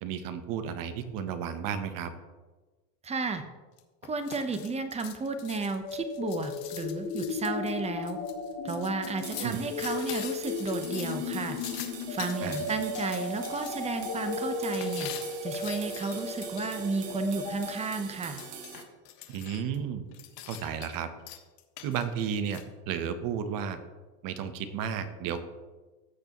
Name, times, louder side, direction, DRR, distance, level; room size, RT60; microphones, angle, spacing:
voice 1, 0.0-2.1 9.4-9.6 12.4-12.6 19.3-20.0 20.5-21.1 21.8-23.8 24.2-25.4, right 8 dB, 45° right, 9 dB, 1.0 m, -33 dB
voice 2, 3.0-3.4 4.0-8.2 8.6-11.6 12.1-15.1 15.4-18.4, right 4 dB, 15° right, 8 dB, 0.8 m, -33 dB
sound 1, 3.8-13.7 14.7-17.0 17.8-19.8 20.1-21.0 21.3-22.6, left 12 dB, 75° left, 1.5 m, -44 dB
sound 2, 5.8-17.7, left 4 dB, 50° left, 2.6 m, -35 dB
sound 3, 9.2-18.8, right 7 dB, 75° right, 1.6 m, -44 dB
14.5 x 6.7 x 3.0 m, 1.3 s
supercardioid pair, 120°, 49 cm